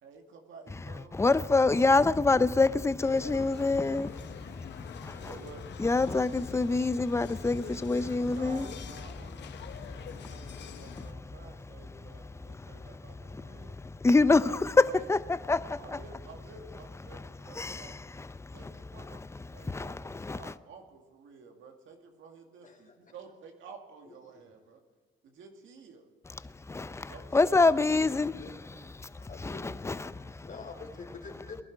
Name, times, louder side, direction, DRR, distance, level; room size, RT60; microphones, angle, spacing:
voice 1, 0.0-1.2 5.0-5.6 8.3-13.8 14.2-15.1 15.8-17.9 18.5-19.2 19.5-24.8 25.2-26.0 27.1-27.7, right 5 dB, 75° right, 2.2 m, -51 dB
voice 2, 1.1-5.3 5.8-8.7 9.6-10.3 12.6-12.9 13.3-16.0 17.1-17.2 17.6-18.5 19.1-19.3 19.7-20.5 26.7-29.1 29.4-30.5, left 3 dB, 15° left, 0.6 m, -27 dB
sound 1, 3.0-11.1, left 9 dB, 60° left, 0.9 m, -46 dB
voice 3, 22.6-23.0 24.0-24.5 28.3-28.5 29.2-30.0 30.4-31.6, left 4 dB, 40° left, 3.3 m, -46 dB
21.0 x 11.0 x 4.7 m
cardioid pair, 90°, 20 cm